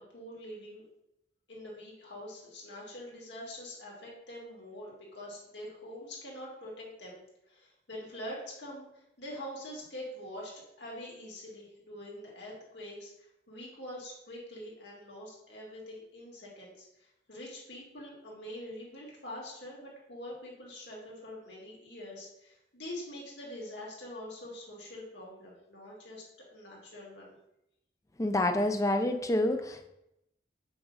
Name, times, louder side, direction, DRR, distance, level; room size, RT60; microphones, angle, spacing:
voice 1, 0.1-0.8 1.5-7.2 7.4-10.5 10.8-26.2 26.5-27.3, left 1 dB, 75° left, -3 dB, 2.6 m, -45 dB
voice 2, 28.2-29.9, left 1 dB, 15° left, 6 dB, 0.5 m, -28 dB
6.2 x 4.0 x 6.1 m, 0.83 s
head